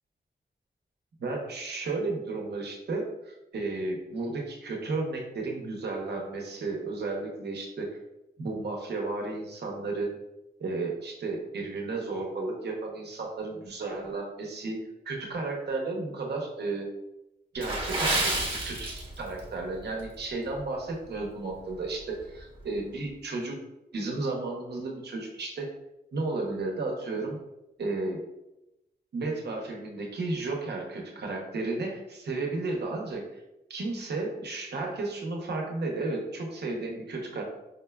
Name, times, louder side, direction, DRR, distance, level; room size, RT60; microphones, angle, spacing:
voice 1, 1.2-8.0 8.4-10.2 10.6-14.8 15.1-16.9 17.5-18.3 18.6-18.9 19.2-23.6 23.9-25.7 26.1-27.4 27.8-28.2 29.1-33.4 33.7-37.4, right 3 dB, 75° right, 0 dB, 0.7 m, -33 dB
Water / Splash splatter, 17.6-19.5 19.8-20.0 20.6-20.8 21.3-21.4, right 2 dB, 30° right, 0.8 m, -29 dB
5.1 x 2.2 x 2.2 m, 0.94 s
wide cardioid pair, 145°, 18 cm